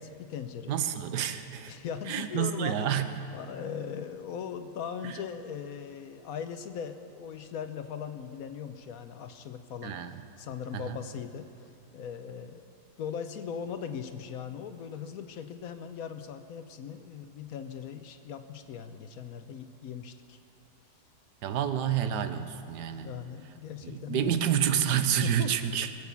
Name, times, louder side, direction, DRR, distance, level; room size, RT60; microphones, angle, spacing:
voice 1, 0.0-0.8 1.7-3.0 3.3-12.6 13.0-20.4 23.0-24.4 25.0-25.5, left 7 dB, 65° left, 9 dB, 1.1 m, -39 dB
voice 2, 0.7-1.7 2.1-3.1 5.0-5.2 9.8-10.2 10.7-11.0 21.4-23.1 23.8-25.9, right 9 dB, 85° right, 10 dB, 1.4 m, -29 dB
20.5 x 8.3 x 7.0 m, 2.6 s
omnidirectional pair, 1.8 m